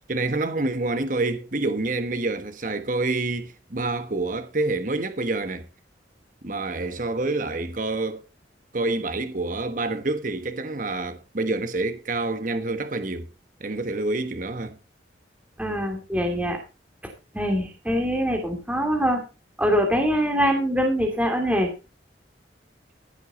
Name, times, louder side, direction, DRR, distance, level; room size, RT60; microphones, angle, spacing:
voice 1, 0.1-5.7 6.4-8.2 8.7-13.3 13.6-14.8, right 2 dB, 45° right, 1.3 m, -27 dB
voice 2, 15.6-16.6 17.3-19.2 19.6-21.7, equal, 10° right, 2.9 m, -23 dB
15.0 x 8.2 x 4.2 m
head